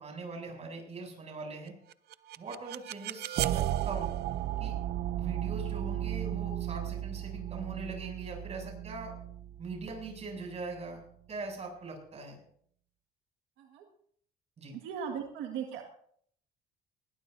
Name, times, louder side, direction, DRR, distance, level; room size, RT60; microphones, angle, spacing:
voice 1, 0.0-1.7 2.4-4.1 4.6-4.8 5.2-9.1 9.6-11.0 11.3-12.4 14.6-14.7, right 3 dB, 40° right, 2 dB, 7.6 m, -41 dB
sound 1, 1.9-10.9, right 12 dB, 70° right, 0.6 m, -35 dB
voice 2, 14.7-15.8, right 7 dB, 85° right, 2 dB, 1.9 m, -38 dB
20.0 x 19.5 x 2.7 m, 0.63 s
cardioid pair, 110°, 17 cm